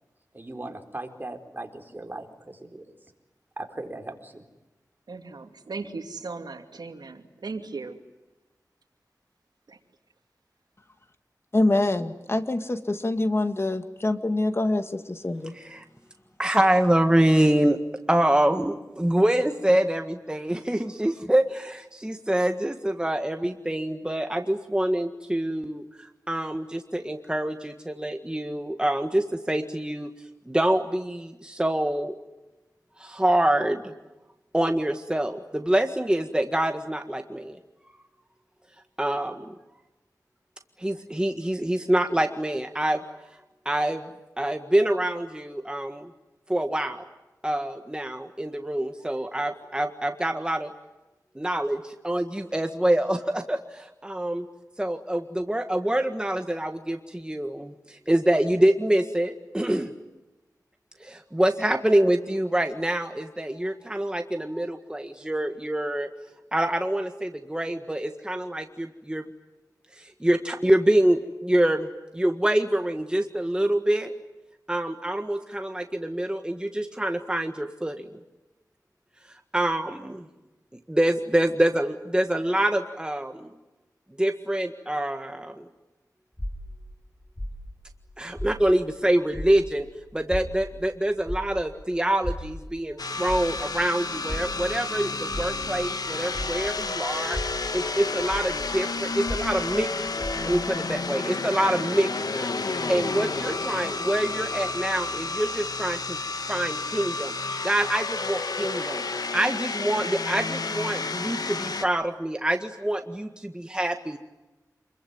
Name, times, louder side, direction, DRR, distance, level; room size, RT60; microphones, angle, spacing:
voice 1, 0.3-2.9 3.6-4.4, right 2 dB, 30° right, 4.4 m, -38 dB
voice 2, 5.1-8.0 9.7-9.8, right 4 dB, 80° right, 2.6 m, -37 dB
voice 3, 11.5-15.5, left 2 dB, 40° left, 1.9 m, -25 dB
voice 4, 15.5-15.9 16.4-17.8 18.1-30.1 30.5-32.1 33.0-33.9 34.5-37.6 39.0-39.6 40.8-43.0 43.7-44.0 44.4-46.1 46.5-47.0 47.4-50.7 51.4-54.5 54.8-59.9 61.0-66.1 66.5-69.2 70.0-71.9 72.1-74.1 74.7-78.1 79.5-80.3 80.9-83.5 84.2-85.7 88.2-89.9 90.1-97.4 97.7-106.2 106.5-114.2, right 1 dB, 15° right, 1.7 m, -26 dB
sound 1, 86.4-89.0 89.3-96.9 97.2-100.8, equal, 15° left, 7.6 m, -36 dB
sound 2, 93.0-111.9, left 3 dB, 70° left, 1.6 m, -31 dB
27.5 x 23.0 x 9.5 m
wide cardioid pair, 70°, 7 cm